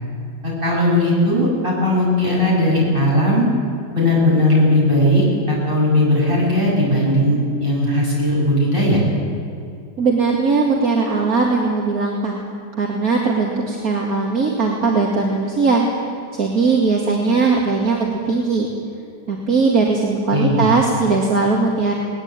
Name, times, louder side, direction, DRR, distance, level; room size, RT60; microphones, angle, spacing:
voice 1, 0.4-3.5 3.9-9.0 20.3-20.7, left 1 dB, 30° right, -5 dB, 8.0 m, -17 dB
voice 2, 10.0-12.4 12.8-18.7 19.3-21.9, right 4 dB, 60° right, -2 dB, 2.7 m, -19 dB
21.0 x 19.0 x 9.1 m, 2.5 s
omnidirectional pair, 1.8 m